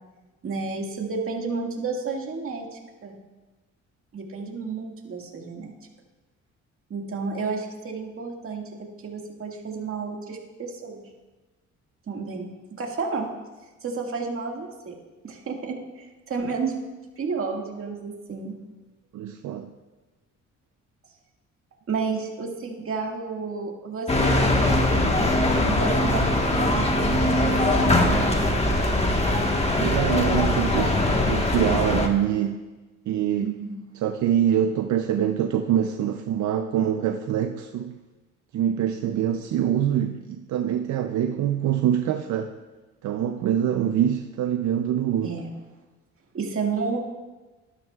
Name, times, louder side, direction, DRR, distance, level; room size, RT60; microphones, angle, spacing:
voice 1, 0.4-3.2 4.1-5.7 6.9-11.1 12.1-12.5 12.8-13.3 13.8-14.9 15.2-16.8 17.2-18.5 21.9-24.8 25.6-28.2 33.4-33.8 45.2-45.5 46.3-47.0, right 4 dB, 45° right, 0 dB, 1.9 m, -31 dB
voice 2, 19.1-19.7 29.8-32.6 33.1-33.5 34.0-37.9 38.5-42.6 43.0-45.4, right 9 dB, 70° right, 6 dB, 0.6 m, -25 dB
sound 1, 24.1-32.1, left 1 dB, 20° left, 1.4 m, -21 dB
12.5 x 12.0 x 2.4 m, 1.2 s
cardioid pair, 90°, 30 cm